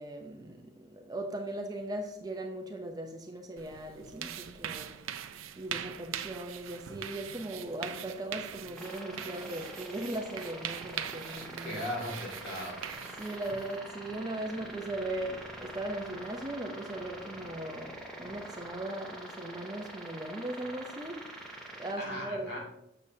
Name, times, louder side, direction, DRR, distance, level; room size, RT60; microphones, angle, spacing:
voice 1, 0.0-5.2 5.6-11.8 13.2-22.6, right 1 dB, 20° right, 3 dB, 0.5 m, -39 dB
sound 1, 3.6-13.8, right 9 dB, 90° right, 0.4 m, -42 dB
sound 2, 8.8-21.9, right 1 dB, ahead, 1.0 m, -45 dB
voice 2, 11.6-12.7 22.0-22.6, left 1 dB, 55° left, -2 dB, 2.2 m, -37 dB
6.7 x 6.7 x 2.7 m, 0.81 s
head